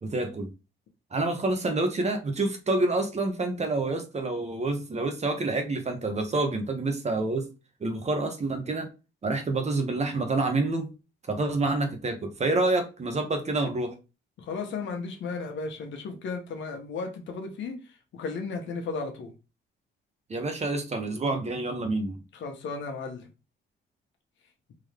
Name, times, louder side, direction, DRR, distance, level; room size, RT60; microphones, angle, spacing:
voice 1, 0.0-0.5 1.1-7.5 7.8-8.9 9.2-10.9 11.3-13.9 20.3-22.2, right 2 dB, 35° right, 1.1 m, -28 dB
voice 2, 14.4-17.7 18.1-19.3 22.3-23.3, left 4 dB, 70° left, 1.1 m, -34 dB
3.8 x 3.0 x 3.4 m
cardioid pair, 90°, 20 cm